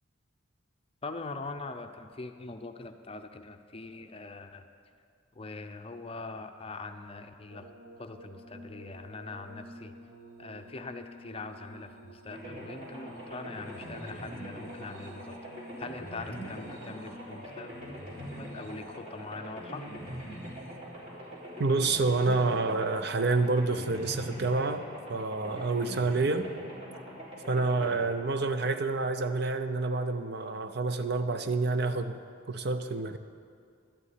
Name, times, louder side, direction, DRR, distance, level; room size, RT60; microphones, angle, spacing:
voice 1, 1.0-4.7 5.3-7.7 8.0-10.0 10.4-15.4 15.8-17.7 18.3-19.9, left 3 dB, 30° left, 7 dB, 0.6 m, -42 dB
sound 1, 7.5-22.7 23.6-24.3 25.7-25.9, right 1 dB, 85° right, 1.0 m, -52 dB
sound 2, 12.3-29.2, equal, 35° right, 4.1 m, -43 dB
voice 2, 21.6-26.5 27.5-32.2 32.5-33.2, right 3 dB, 55° right, 9 dB, 0.6 m, -28 dB
12.0 x 6.9 x 9.1 m, 2.2 s
head